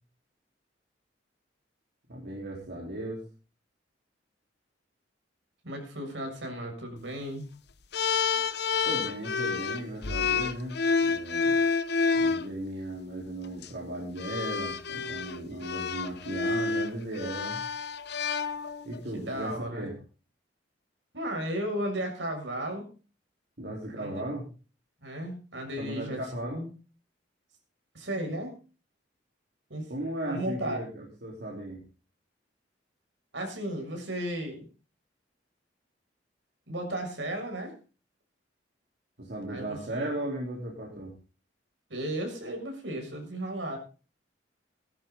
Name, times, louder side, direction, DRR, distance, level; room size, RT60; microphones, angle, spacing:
voice 1, 2.1-3.2 8.9-11.6 12.1-17.6 18.8-19.9 23.6-24.5 25.8-26.6 29.9-31.8 39.2-41.1, right 1 dB, 60° right, -3 dB, 4.1 m, -36 dB
voice 2, 5.6-7.5 19.1-19.9 21.1-22.9 24.0-24.2 25.0-26.7 27.9-28.5 29.7-29.9 30.3-30.8 33.3-34.7 36.7-37.8 39.5-40.1 41.9-43.8, right 1 dB, 80° right, 2 dB, 7.0 m, -34 dB
sound 1, 7.9-12.4 13.4-13.7 14.2-19.0, left 5 dB, 65° left, 1.1 m, -29 dB
18.0 x 13.0 x 4.0 m, 0.36 s
head